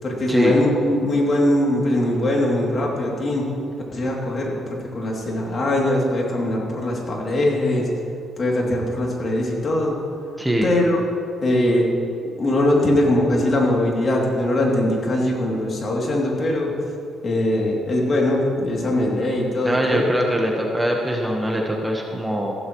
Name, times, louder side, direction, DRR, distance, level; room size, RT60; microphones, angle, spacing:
voice 1, 0.0-3.4 3.9-4.5 4.9-7.9 8.4-10.0 10.6-11.0 11.4-11.9 12.4-16.7 17.2-20.1, left 1 dB, 45° left, -2 dB, 2.9 m, -21 dB
voice 2, 10.4-10.7 19.6-22.5, equal, 10° right, 0 dB, 1.3 m, -22 dB
15.0 x 12.5 x 3.2 m, 2.5 s
cardioid pair, 90°, 0 cm